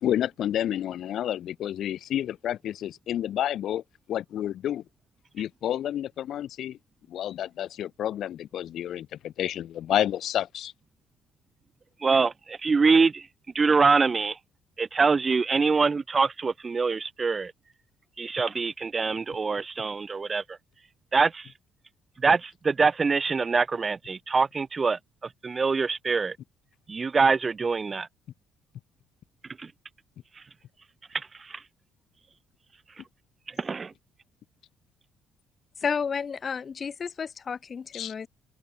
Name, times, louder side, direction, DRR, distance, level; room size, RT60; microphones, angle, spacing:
voice 1, 0.0-4.8 5.3-6.8 7.1-10.7 37.9-38.1, left 11 dB, 65° left, 1.1 m, -30 dB
voice 2, 12.0-13.3 13.5-14.4 14.8-17.5 18.2-20.4 21.1-21.5 22.2-25.0 25.4-26.4 26.9-28.1 29.6-29.7 31.5-31.6 33.6-33.9, right 4 dB, 30° right, 0.6 m, -24 dB
voice 3, 35.8-38.3, left 6 dB, 40° left, 1.0 m, -31 dB
open air
cardioid pair, 85°, 0 cm